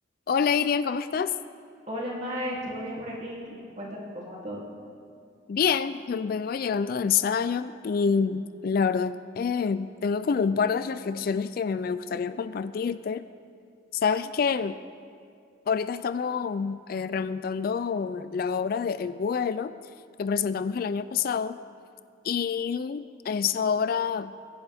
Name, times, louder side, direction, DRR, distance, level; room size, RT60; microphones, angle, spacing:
voice 1, 0.3-1.3 5.5-13.3 13.9-14.8 15.7-19.7 20.2-21.6 22.2-24.4, left 6 dB, 50° left, 14 dB, 0.3 m, -27 dB
voice 2, 1.9-4.6, equal, 35° right, -4 dB, 2.9 m, -35 dB
22.5 x 10.5 x 3.5 m, 2.3 s
head